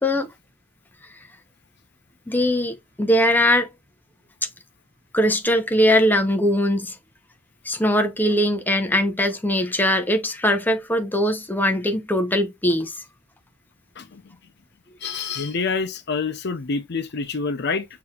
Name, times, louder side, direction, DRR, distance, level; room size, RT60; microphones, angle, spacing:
voice 1, 2.3-3.7 5.1-6.9 7.7-12.9, equal, 10° left, 0.7 m, -21 dB
voice 2, 15.0-17.8, left 4 dB, 60° left, 0.6 m, -27 dB
6.8 x 2.9 x 2.4 m
head